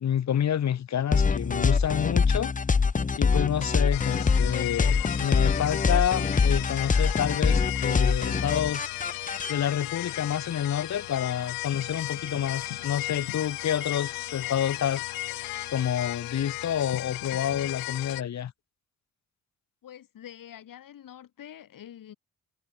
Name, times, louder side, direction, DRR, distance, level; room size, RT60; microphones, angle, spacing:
voice 1, 0.0-2.5 3.1-8.9 9.5-15.0 15.7-18.5, left 9 dB, 50° left, 1.1 m, -28 dB
sound 1, 1.1-9.5, left 5 dB, 25° left, 0.8 m, -24 dB
sound 2, 3.9-18.2, left 23 dB, 90° left, 1.3 m, -35 dB
sound 3, 6.2-16.1, right 3 dB, 25° right, 2.4 m, -51 dB
voice 2, 19.8-22.1, left 10 dB, 70° left, 6.2 m, -46 dB
supercardioid pair, 55°, 34 cm